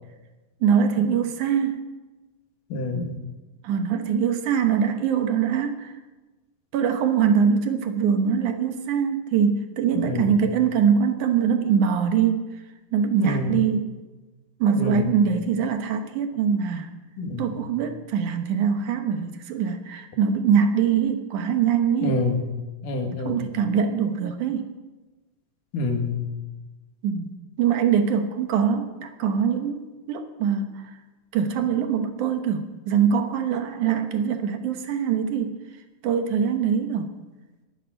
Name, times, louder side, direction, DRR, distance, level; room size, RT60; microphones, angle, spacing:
voice 1, 0.6-1.9 3.6-6.0 6.7-12.4 12.9-14.0 14.6-16.9 17.4-22.3 23.3-24.7 27.0-30.9 31.3-35.6 36.0-37.2, right 7 dB, 70° right, 7 dB, 2.4 m, -23 dB
voice 2, 2.7-3.1 9.9-10.3 13.2-13.6 14.7-15.1 17.2-17.5 22.0-22.4 22.8-23.4 25.7-26.2, left 2 dB, 75° left, 3 dB, 3.4 m, -27 dB
11.5 x 10.0 x 9.9 m, 1.2 s
omnidirectional pair, 3.8 m